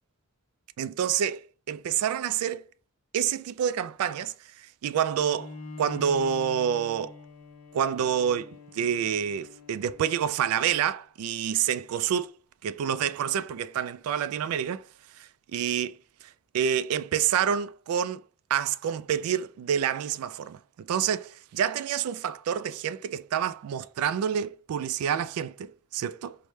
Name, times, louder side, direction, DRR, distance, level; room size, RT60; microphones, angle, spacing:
voice 1, 0.8-1.4 1.7-2.6 3.1-4.3 4.8-7.1 7.7-12.3 12.6-14.8 15.2-16.0 16.5-18.2 18.5-26.4, right 8 dB, 75° right, 0.3 m, -28 dB
Bowed string instrument, 5.1-10.8, left 3 dB, 85° left, 0.6 m, -45 dB
4.7 x 2.1 x 3.2 m
head